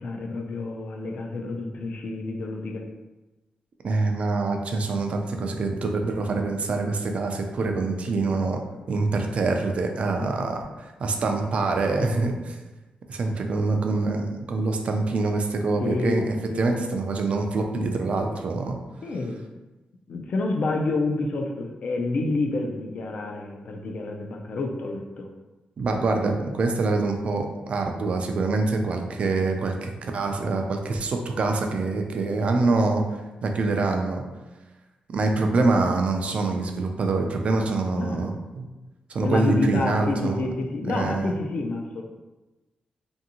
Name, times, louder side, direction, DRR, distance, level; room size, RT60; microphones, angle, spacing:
voice 1, 0.0-2.8 8.0-8.1 10.2-10.3 15.8-16.2 16.5-16.9 19.0-19.4 20.1-25.3 38.0-38.4 39.2-42.0, left 2 dB, 50° left, 2 dB, 0.4 m, -28 dB
voice 2, 3.8-8.6 8.9-12.6 13.1-18.8 25.8-33.0 33.4-34.2 35.1-38.7 39.1-40.4 40.8-41.3, right 3 dB, 45° right, 3 dB, 0.3 m, -25 dB
2.6 x 2.6 x 2.7 m, 1.1 s
wide cardioid pair, 165°, 3 cm